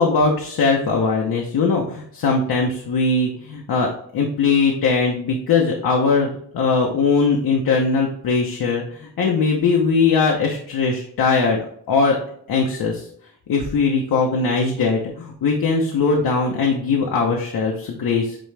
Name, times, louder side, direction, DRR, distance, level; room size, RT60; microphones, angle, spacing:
voice 1, 0.0-12.2 12.5-13.1 13.5-18.4, left 4 dB, 60° left, 0 dB, 1.1 m, -20 dB
8.9 x 3.1 x 3.4 m, 0.62 s
wide cardioid pair, 160°, 40 cm